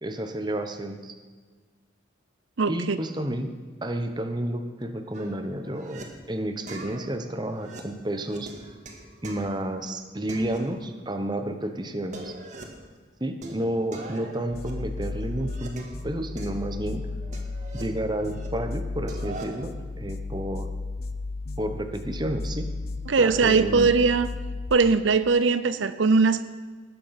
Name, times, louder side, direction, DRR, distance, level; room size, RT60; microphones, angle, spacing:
voice 1, 0.0-1.2 2.7-3.5 3.8-8.5 9.2-12.3 13.2-17.0 17.7-20.7 21.6-22.7 23.2-23.9, right 1 dB, 20° right, 7 dB, 1.0 m, -31 dB
voice 2, 2.6-3.0 23.1-24.3 24.7-26.4, right 4 dB, 80° right, 12 dB, 0.6 m, -20 dB
sound 1, 5.1-6.0 6.7-9.9 10.3-11.2 11.4-11.5 11.9-12.9 13.4-16.0 16.4-18.5 18.8-19.7, right 2 dB, 40° right, 1.8 m, -43 dB
sound 2, 14.5-24.7, left 3 dB, 55° left, 0.7 m, -34 dB
19.0 x 8.2 x 5.9 m, 1.5 s
head